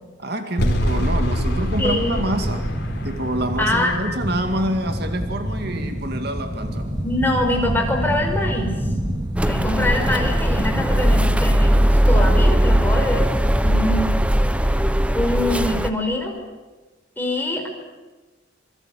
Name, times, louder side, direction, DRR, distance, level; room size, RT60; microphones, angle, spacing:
voice 1, 0.2-2.7 3.0-7.0, right 1 dB, 55° right, 6 dB, 2.2 m, -27 dB
sound 1, 0.6-5.7, equal, 55° left, 4.5 m, -26 dB
sound 2, 1.5-11.3, equal, 20° right, 3.2 m, -27 dB
voice 2, 1.8-2.2 3.6-3.9 7.0-8.8 9.4-13.3 13.6-14.2 14.6-16.3 17.2-17.7, left 1 dB, 10° left, 2 dB, 5.2 m, -24 dB
sound 3, 9.4-15.9, equal, 5° right, 0.8 m, -18 dB
27.0 x 22.0 x 8.6 m, 1.2 s
head